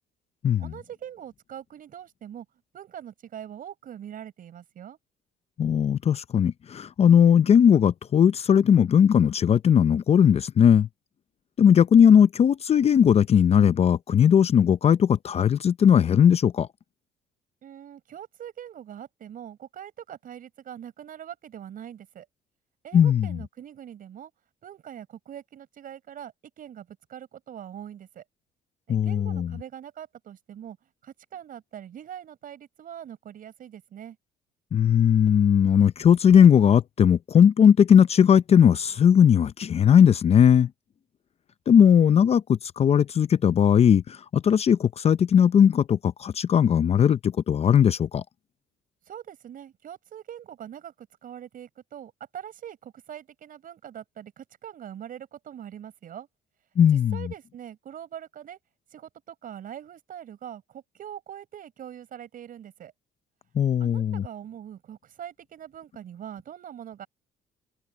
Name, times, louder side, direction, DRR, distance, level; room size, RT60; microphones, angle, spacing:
voice 1, 0.6-2.5 2.7-5.0 17.6-22.3 22.8-24.3 24.6-28.2 28.9-30.8 31.0-34.2 49.1-56.3 56.9-58.6 58.9-62.9 63.8-67.1, right 10 dB, 55° right, 7.0 m, -42 dB
voice 2, 5.6-10.9 11.6-16.7 22.9-23.4 28.9-29.5 34.7-40.7 41.7-44.0 44.3-48.2 56.8-57.2 63.6-64.2, left 8 dB, 40° left, 0.6 m, -18 dB
open air
cardioid pair, 110°, 17 cm